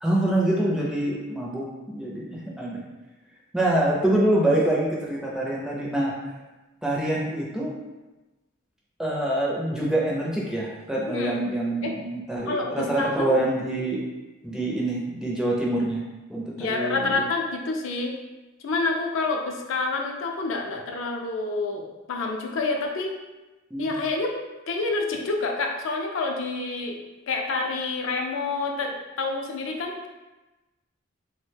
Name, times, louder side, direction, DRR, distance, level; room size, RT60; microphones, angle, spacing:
voice 1, 0.0-2.8 3.5-6.1 6.8-7.7 9.0-14.0 14.4-16.0 16.3-17.2 23.7-23.9, right 1 dB, 5° right, -4 dB, 0.4 m, -25 dB
voice 2, 11.1-11.4 11.8-11.9 12.5-13.4 16.6-18.1 18.6-23.2 23.8-24.4 24.7-27.0 27.3-30.1, left 3 dB, 75° left, 2 dB, 0.4 m, -28 dB
2.9 x 2.1 x 3.2 m, 1.1 s
head